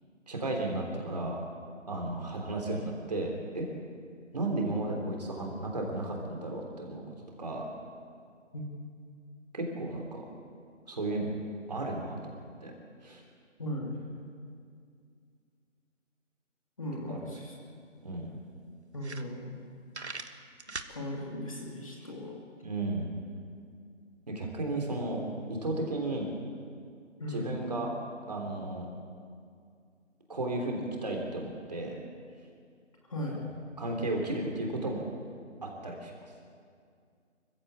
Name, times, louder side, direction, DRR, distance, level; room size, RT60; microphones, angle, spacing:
voice 1, 0.3-1.4 1.9-3.7 4.3-7.7 9.5-10.3 10.9-11.3 11.7-12.2 12.6-12.7 13.0-13.2 17.1-17.2 18.0-18.3 22.6-23.1 24.3-25.2 25.5-26.3 27.3-27.9 28.3-28.9 30.3-32.0 33.3-33.4 33.8-35.0 35.6-36.3, right 2 dB, 30° right, 0 dB, 3.6 m, -34 dB
voice 2, 13.6-14.0 16.8-17.5 18.9-19.5 20.1-20.4 20.9-22.4 27.2-27.7 33.1-33.5, left 1 dB, 25° left, -1 dB, 2.5 m, -37 dB
sound 1, 18.0-18.1 18.6-18.7 18.9-19.6 19.9-20.9, right 3 dB, 55° right, 1.5 m, -40 dB
25.0 x 15.5 x 8.5 m, 2.3 s
figure-of-eight pair, 175°, 39 cm